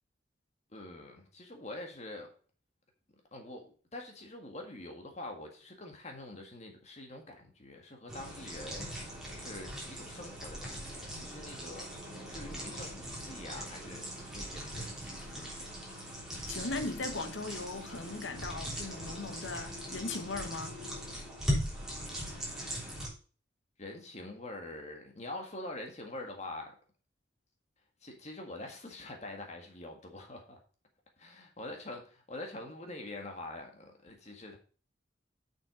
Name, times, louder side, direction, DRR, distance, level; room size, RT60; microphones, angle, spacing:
voice 1, 0.7-2.3 3.3-11.9 12.3-15.5 23.8-26.8 28.0-30.6 31.2-34.6, left 2 dB, 35° left, 1.8 m, -45 dB
sound 1, 8.1-23.1, equal, ahead, 3.3 m, -40 dB
voice 2, 16.5-20.8, left 3 dB, 85° left, 1.2 m, -38 dB
7.2 x 6.3 x 5.0 m
head